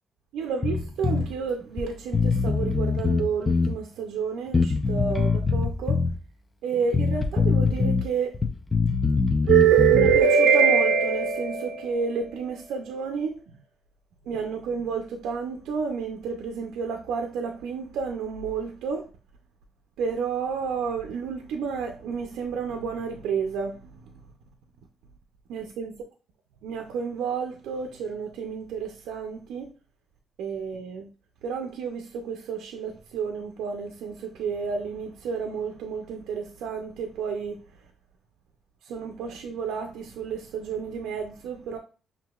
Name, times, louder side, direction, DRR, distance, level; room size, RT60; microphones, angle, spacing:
voice 1, 0.3-6.0 6.6-8.4 9.5-13.6 14.3-19.1 20.0-24.1 25.5-25.9 26.6-29.7 30.4-31.1 31.4-37.6 38.8-41.8, right 6 dB, 90° right, 0.5 m, -28 dB
Bass guitar, 0.6-1.3 1.8-1.9 2.1-3.8 4.5-6.2 6.9-8.1 8.3-10.2, left 4 dB, 25° left, 0.6 m, -23 dB
6.0 x 2.7 x 2.4 m
cardioid pair, 90°, 0 cm